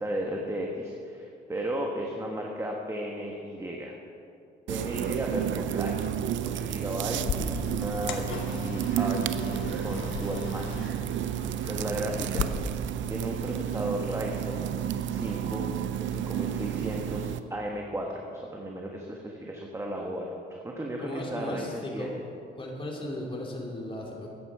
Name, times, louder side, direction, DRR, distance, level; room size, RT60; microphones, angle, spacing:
voice 1, 0.0-4.0 4.7-6.1 6.4-10.7 11.0-11.1 11.6-12.5 13.1-14.7 15.1-15.7 16.0-22.1, right 1 dB, 15° right, 0 dB, 1.4 m, -35 dB
sound 1, 4.7-17.4, right 10 dB, 70° right, 0.6 m, -31 dB
sound 2, 7.2-12.4, left 6 dB, 80° left, 1.1 m, -36 dB
voice 2, 21.0-22.1 22.5-24.3, left 1 dB, 25° left, -1 dB, 2.6 m, -36 dB
13.5 x 9.9 x 4.9 m, 2.5 s
cardioid pair, 90°, 20 cm